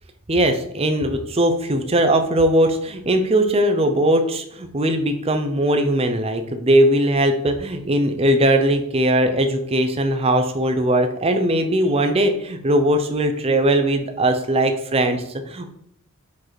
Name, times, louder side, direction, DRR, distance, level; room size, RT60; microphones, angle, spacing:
voice 1, 0.3-15.7, right 1 dB, 25° right, 7 dB, 0.5 m, -19 dB
4.7 x 4.6 x 4.3 m, 0.73 s
head